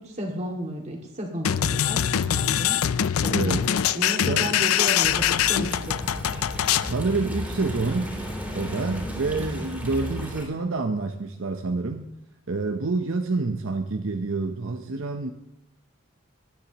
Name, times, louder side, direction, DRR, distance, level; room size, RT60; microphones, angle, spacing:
voice 1, 0.0-2.8 3.2-3.7 3.9-6.0, equal, 35° right, 1 dB, 2.2 m, -33 dB
sound 1, 1.4-6.9, left 10 dB, 90° left, 0.4 m, -23 dB
voice 2, 3.3-3.7 4.3-4.5 6.8-8.2 8.5-12.1 12.5-15.3, right 3 dB, 70° right, 5 dB, 0.8 m, -28 dB
sound 2, 5.1-10.4, equal, 5° right, 3.1 m, -33 dB
19.5 x 10.0 x 3.0 m, 0.87 s
head